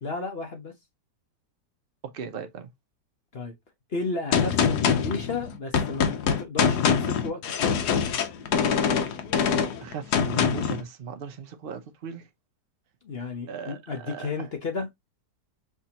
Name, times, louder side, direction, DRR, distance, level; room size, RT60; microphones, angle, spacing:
voice 1, 0.0-0.7 3.3-3.5 3.9-7.8 13.0-14.9, left 3 dB, 45° left, 0.9 m, -33 dB
voice 2, 2.1-2.7 9.8-12.2 13.5-14.3, right 6 dB, 55° right, 0.6 m, -37 dB
Gunshot gunfire, 4.3-10.8, left 7 dB, 75° left, 1.3 m, -24 dB
5.8 x 2.8 x 2.8 m
omnidirectional pair, 1.8 m